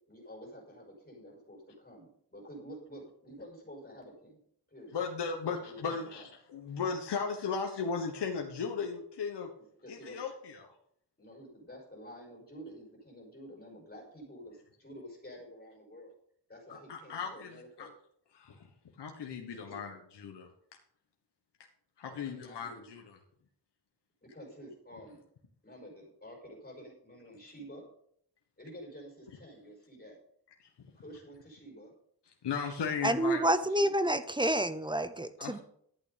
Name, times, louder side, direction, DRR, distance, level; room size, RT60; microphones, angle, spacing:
voice 1, 0.1-4.4 4.7-5.0 5.4-6.3 9.8-10.2 11.2-16.1 16.5-17.9 19.5-19.8 22.0-22.9 24.2-25.2 25.6-27.8 28.6-30.2 30.9-31.9 32.6-33.1 33.4-33.9, equal, 25° left, -1 dB, 5.1 m, -50 dB
voice 2, 4.9-9.5 9.9-10.7 16.7-17.9 18.3-18.7 19.0-20.5 22.0-23.2 30.6-30.7 32.4-33.4 35.4-35.6, left 5 dB, 75° left, 3 dB, 1.5 m, -36 dB
voice 3, 33.0-35.6, right 1 dB, 10° right, 11 dB, 0.7 m, -28 dB
11.5 x 8.8 x 5.2 m, 0.66 s
wide cardioid pair, 135°, 41 cm